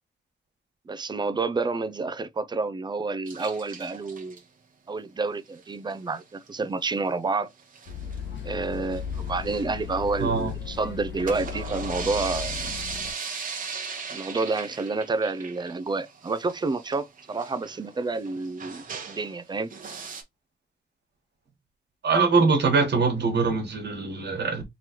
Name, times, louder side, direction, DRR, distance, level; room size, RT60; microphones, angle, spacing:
voice 1, 0.9-4.4 4.9-7.5 8.4-12.7 14.1-19.7, right 3 dB, 25° right, 0.4 m, -29 dB
sound 1, 3.3-4.4 5.6-5.9 6.2-6.3 6.5-6.6 6.9-7.0 7.6-8.2 8.6-10.5 11.0-19.4 19.7-20.2, right 5 dB, 50° right, 0.9 m, -38 dB
sound 2, 7.9-13.1, left 8 dB, 85° left, 0.9 m, -36 dB
voice 2, 10.2-10.5 22.0-24.6, right 4 dB, 75° right, 1.4 m, -23 dB
3.8 x 3.0 x 2.9 m
wide cardioid pair, 145°, 18 cm